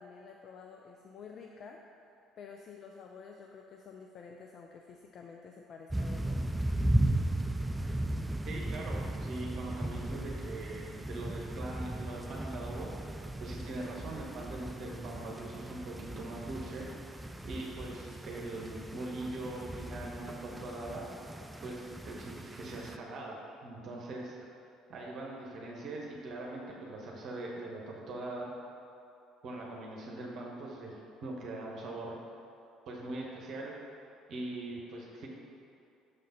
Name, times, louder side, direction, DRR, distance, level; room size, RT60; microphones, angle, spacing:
voice 1, 0.0-1.8 2.4-6.5, left 5 dB, 50° left, 2 dB, 0.4 m, -50 dB
sound 1, 5.9-23.0, right 1 dB, 10° right, 0.4 m, -36 dB
voice 2, 8.4-16.9 17.4-21.0 21.6-23.4 23.6-24.4 24.9-28.5 29.4-30.9 31.2-32.2 32.9-33.7 34.3-35.3, right 2 dB, 55° right, -2 dB, 1.0 m, -41 dB
6.7 x 3.8 x 5.3 m, 2.7 s
hypercardioid pair, 55°, 0 cm